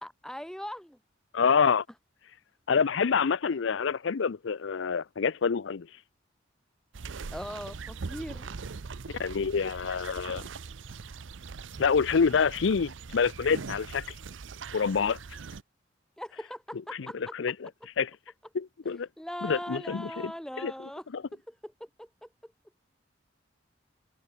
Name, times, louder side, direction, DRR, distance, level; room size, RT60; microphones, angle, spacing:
voice 1, 0.0-1.0 7.3-8.6 16.2-17.4 18.9-22.5, equal, 5° left, 1.0 m, -41 dB
voice 2, 1.3-1.8 2.7-5.9 9.2-10.4 11.8-14.0 14.7-15.2 17.4-17.5 18.0-18.1 18.5-19.1 19.4-20.3 20.6-20.7 21.1-21.2, left 6 dB, 80° left, 0.5 m, -26 dB
sound 1, 6.9-15.6, right 4 dB, 85° right, 0.7 m, -41 dB
head